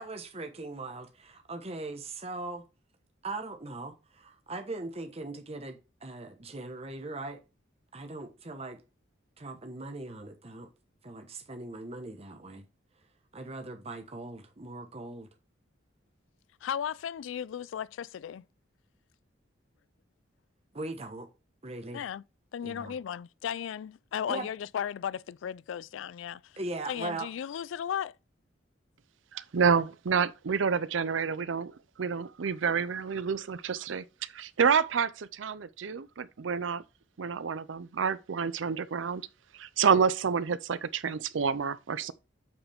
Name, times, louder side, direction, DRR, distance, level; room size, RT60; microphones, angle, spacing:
voice 1, 0.0-2.7 3.2-7.4 7.9-8.8 9.4-10.7 11.0-12.6 13.3-15.3 20.7-21.3 21.6-22.0 22.6-23.0 24.3-24.5 26.6-27.3, right 2 dB, 35° right, 1.1 m, -40 dB
voice 2, 16.6-18.4 21.9-22.2 22.5-26.5 26.9-28.1, left 8 dB, 80° left, 0.3 m, -35 dB
voice 3, 29.3-31.7 32.0-34.0 34.3-36.8 37.2-39.2 39.6-42.1, right 6 dB, 85° right, 0.5 m, -28 dB
8.6 x 4.8 x 3.5 m
head